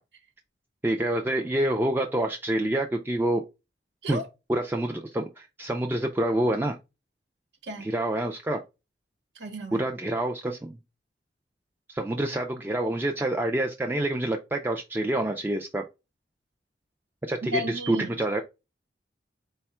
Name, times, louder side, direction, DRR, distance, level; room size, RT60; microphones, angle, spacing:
voice 1, 0.8-3.4 4.1-4.2 4.5-6.8 7.8-8.6 9.7-10.8 11.9-15.8 17.3-18.4, right 1 dB, 10° right, 0.3 m, -27 dB
voice 2, 9.4-9.8 17.4-18.2, right 1 dB, 85° right, 1.2 m, -33 dB
4.2 x 2.3 x 4.2 m
head